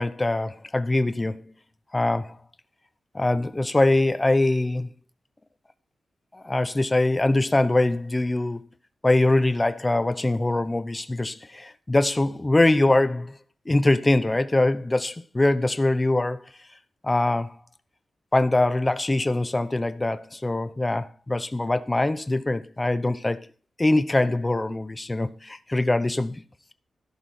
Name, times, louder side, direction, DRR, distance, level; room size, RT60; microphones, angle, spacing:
voice 1, 0.0-1.4 1.9-2.4 3.1-4.9 6.3-8.6 9.0-13.4 13.7-16.5 17.0-17.6 18.3-23.5 23.8-26.4, left 2 dB, 15° left, 0.8 m, -23 dB
12.5 x 11.0 x 4.3 m
wide cardioid pair, 135°, 0 cm